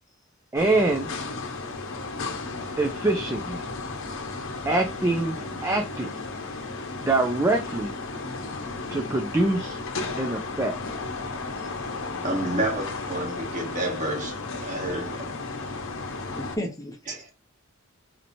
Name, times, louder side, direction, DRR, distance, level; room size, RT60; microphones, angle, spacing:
voice 1, 0.5-1.1 2.8-3.6 4.7-5.4 5.6-6.1 7.0-7.9 8.9-9.8 10.2-10.7, right 2 dB, 15° right, 0.4 m, -24 dB
sound 1, 0.6-16.6, left 3 dB, 65° left, 0.8 m, -34 dB
voice 2, 12.1-15.7 17.1-17.3, right 2 dB, 35° right, 1.2 m, -31 dB
voice 3, 16.3-17.3, equal, 15° left, 0.9 m, -34 dB
4.2 x 2.8 x 2.6 m
head